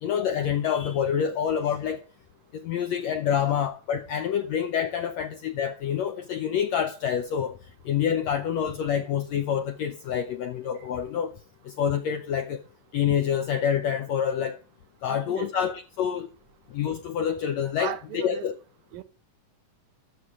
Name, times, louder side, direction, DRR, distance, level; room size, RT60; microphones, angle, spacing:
voice 1, 0.0-2.0 2.6-7.6 7.8-11.3 11.6-12.6 12.9-14.6 15.0-16.3 16.7-18.5, left 8 dB, 85° left, 1.6 m, -27 dB
voice 2, 15.1-15.5 17.8-18.4 18.9-19.0, right 13 dB, 90° right, 2.6 m, -36 dB
13.0 x 5.1 x 7.2 m
omnidirectional pair, 4.0 m